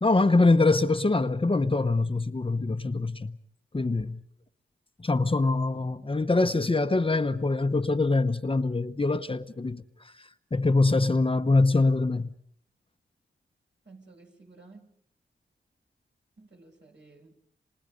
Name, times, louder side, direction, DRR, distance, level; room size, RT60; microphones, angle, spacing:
voice 1, 0.0-3.4 3.7-4.2 5.0-9.8 10.5-12.3, left 3 dB, 25° left, 1.0 m, -24 dB
voice 2, 13.8-14.8 16.4-17.3, right 3 dB, 65° right, 7.7 m, -53 dB
29.0 x 26.5 x 5.3 m
cardioid pair, 60°, 20 cm